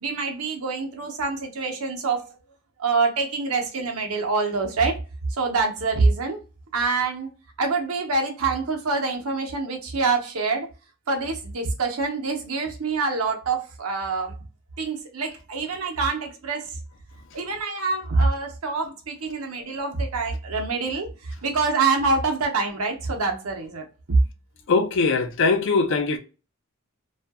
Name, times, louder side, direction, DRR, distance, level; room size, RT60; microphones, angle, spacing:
voice 1, 0.0-2.4 2.8-5.0 5.3-6.4 6.7-7.3 7.6-10.7 11.1-14.4 14.8-16.8 17.3-24.2, right 4 dB, 80° right, 0.8 m, -25 dB
voice 2, 24.7-26.2, left 4 dB, 60° left, 0.5 m, -21 dB
2.6 x 2.4 x 2.2 m
head